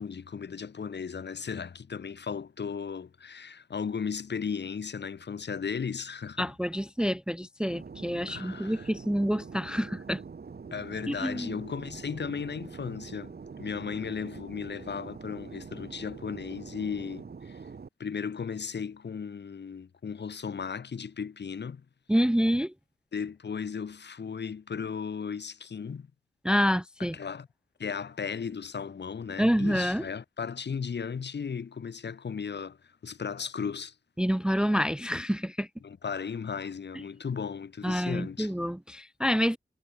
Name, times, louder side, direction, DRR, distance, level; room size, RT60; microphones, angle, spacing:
voice 1, 0.0-6.5 8.3-8.9 10.7-17.7 18.0-21.8 23.1-26.1 27.0-27.5 27.8-33.9 35.8-38.5, left 6 dB, 70° left, 1.3 m, -36 dB
voice 2, 6.4-10.2 11.1-11.5 22.1-22.7 26.4-27.2 29.4-30.1 34.2-35.7 37.8-39.6, equal, 5° right, 0.3 m, -27 dB
Fixed-wing aircraft airplane, 7.7-17.9, right 5 dB, 60° right, 1.5 m, -44 dB
cardioid pair, 45°, 18 cm